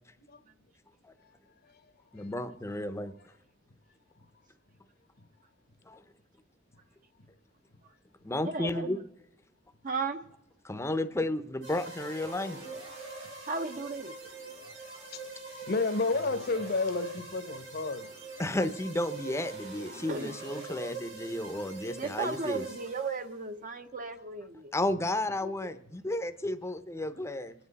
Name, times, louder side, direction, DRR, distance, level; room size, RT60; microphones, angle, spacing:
voice 1, 1.2-2.3 5.2-5.3 7.2-7.3 15.0-18.1, left 3 dB, 50° left, 0.9 m, -33 dB
voice 2, 2.1-3.1 5.9-6.0 8.2-9.0 10.6-12.6 18.4-22.6 24.7-27.5, left 1 dB, 15° left, 0.7 m, -32 dB
voice 3, 8.4-9.0 9.8-10.2 13.5-14.1 20.1-20.3 21.9-24.7 25.4-25.5, right 4 dB, 45° right, 0.8 m, -35 dB
sound 1, 11.6-23.4, right 3 dB, 90° right, 4.9 m, -44 dB
27.0 x 9.9 x 4.1 m
head